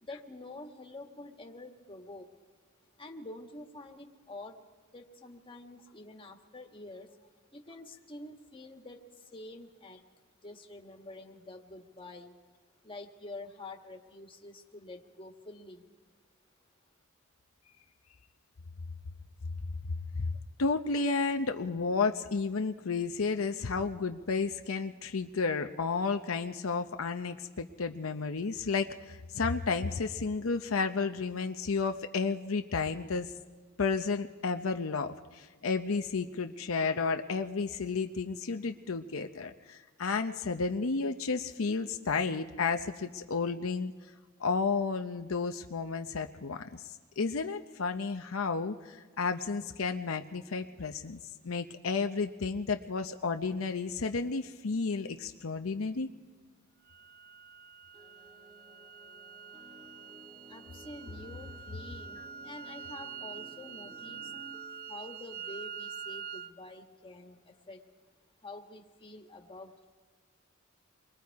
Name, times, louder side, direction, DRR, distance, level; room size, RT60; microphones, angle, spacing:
voice 1, 0.0-2.3 3.0-4.6 4.9-10.0 10.4-12.3 12.8-15.9 60.5-64.3 64.9-67.9 68.4-69.9, left 2 dB, 25° left, 2 dB, 1.7 m, -47 dB
voice 2, 20.6-33.3 33.8-43.9 44.4-46.8 47.2-56.1, left 4 dB, 75° left, 6 dB, 0.7 m, -32 dB
sound 1, 56.9-66.5, right 7 dB, 45° right, 0.5 m, -45 dB
sound 2, 57.9-66.4, right 1 dB, 20° right, 1.2 m, -55 dB
28.0 x 22.5 x 4.7 m, 1.4 s
head